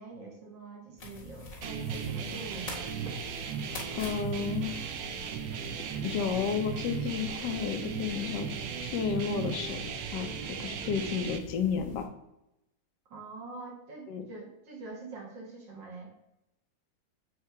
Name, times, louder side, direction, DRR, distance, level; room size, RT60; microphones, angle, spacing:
voice 1, 0.0-2.9 13.1-16.1, right 3 dB, 85° right, -1 dB, 2.1 m, -44 dB
sound 1, 1.0-12.1, left 3 dB, 40° left, 2.1 m, -47 dB
sound 2, 1.6-11.4, right 7 dB, 65° right, 0.9 m, -36 dB
sound 3, 2.4-3.2 4.0-4.8 5.9-6.4 7.5-7.7 8.8-9.6, left 1 dB, 25° left, 1.5 m, -49 dB
voice 2, 3.9-4.7 6.0-8.5 8.8-9.9 10.1-10.3 10.6-12.1 14.1-14.2, left 7 dB, 75° left, 7 dB, 1.3 m, -32 dB
7.6 x 2.8 x 4.6 m, 0.88 s
omnidirectional pair, 1.9 m